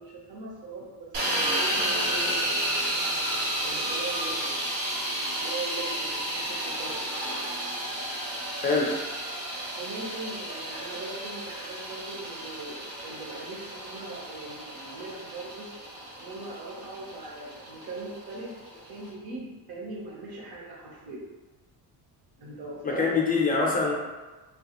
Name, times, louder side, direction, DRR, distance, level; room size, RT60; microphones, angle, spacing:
voice 1, 0.0-2.9 3.6-4.6 5.1-7.0 9.8-15.7 16.2-21.2 22.4-23.1, right 3 dB, 55° right, -3 dB, 0.9 m, -40 dB
sound 1, 1.1-19.1, right 1 dB, 80° right, 1.0 m, -32 dB
voice 2, 8.6-9.0 22.8-23.9, left 4 dB, 20° left, -2 dB, 0.4 m, -24 dB
3.3 x 2.3 x 2.9 m, 1.2 s
cardioid pair, 150°, 44 cm